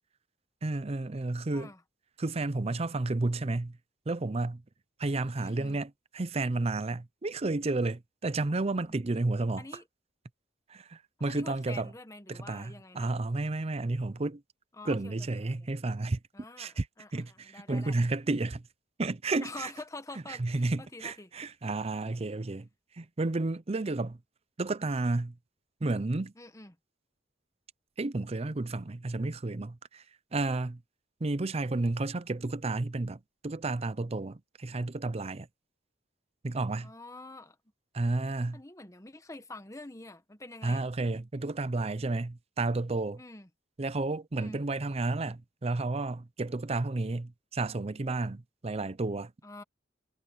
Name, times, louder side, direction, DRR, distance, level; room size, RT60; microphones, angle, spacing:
voice 1, 0.6-1.7 2.2-3.7 4.1-4.6 5.0-9.6 10.7-11.9 12.3-14.4 14.9-16.2 16.6-16.9 17.1-18.6 19.0-19.7 20.3-22.7 23.0-24.2 24.6-25.3 25.8-26.3 28.0-30.0 30.3-30.8 31.2-35.5 36.4-36.9 37.9-38.6 40.6-43.2 43.8-49.3, right 2 dB, 35° right, 0.6 m, -31 dB
voice 2, 5.4-5.8 8.9-9.0 9.6-9.8 11.2-13.1 14.7-15.7 16.3-17.9 19.4-21.3 26.4-26.8 36.8-37.6 38.5-40.9 43.2-43.5 44.4-44.6 49.4-49.6, left 2 dB, 15° left, 1.2 m, -47 dB
head